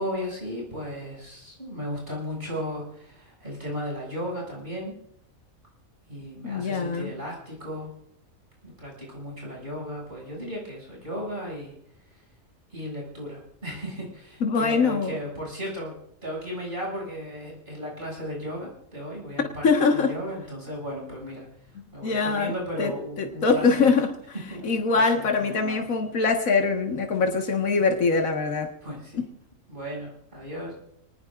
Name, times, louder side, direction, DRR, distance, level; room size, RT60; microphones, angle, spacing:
voice 1, 0.0-4.9 6.1-7.9 8.6-11.7 12.7-16.0 16.2-21.5 21.9-23.9 24.5-25.8 28.8-29.2 29.7-30.7, equal, 40° right, -4 dB, 7.5 m, -35 dB
voice 2, 6.4-7.1 14.4-15.2 19.4-20.2 22.0-22.5 22.8-24.1 24.6-28.7 29.1-29.2, left 4 dB, 80° left, 3 dB, 2.0 m, -23 dB
27.5 x 19.0 x 2.5 m, 0.74 s
omnidirectional pair, 1.4 m